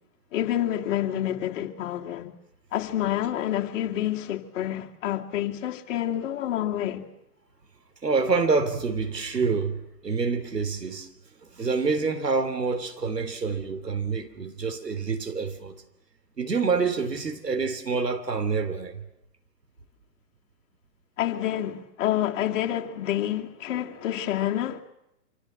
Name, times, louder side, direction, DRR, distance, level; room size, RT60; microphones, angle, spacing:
voice 1, 0.3-2.3 2.7-7.1 21.2-24.8, left 12 dB, 50° left, 2.8 m, -28 dB
voice 2, 8.0-11.1 11.4-15.8 16.4-19.0, right 4 dB, 90° right, 3.4 m, -27 dB
26.0 x 25.0 x 7.4 m
hypercardioid pair, 120°, 47 cm